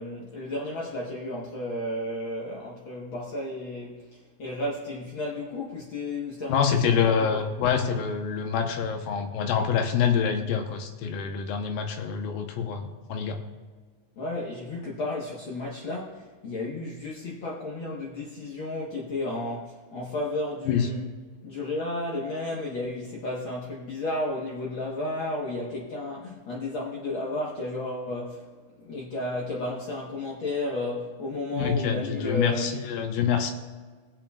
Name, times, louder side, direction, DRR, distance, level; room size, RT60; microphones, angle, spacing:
voice 1, 0.0-7.4 14.2-21.1 21.4-28.4 28.8-32.8, left 2 dB, 65° left, 1.2 m, -33 dB
voice 2, 6.5-13.4 20.7-20.9 31.5-33.5, left 7 dB, 80° left, 2.6 m, -26 dB
22.0 x 7.6 x 2.3 m
omnidirectional pair, 4.0 m